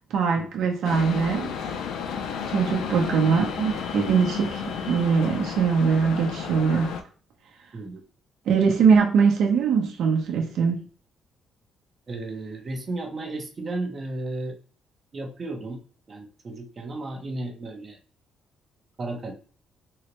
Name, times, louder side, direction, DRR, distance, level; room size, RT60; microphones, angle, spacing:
voice 1, 0.1-1.5 2.5-6.9 8.5-10.8, right 6 dB, 75° right, 0.7 m, -22 dB
sound 1, 0.8-7.0, left 6 dB, 85° left, 0.4 m, -32 dB
voice 2, 7.7-8.0 12.1-14.6 15.1-15.8 16.1-18.0 19.0-19.3, right 2 dB, 35° right, 0.6 m, -34 dB
3.8 x 2.1 x 2.9 m
cardioid pair, 130°, 0 cm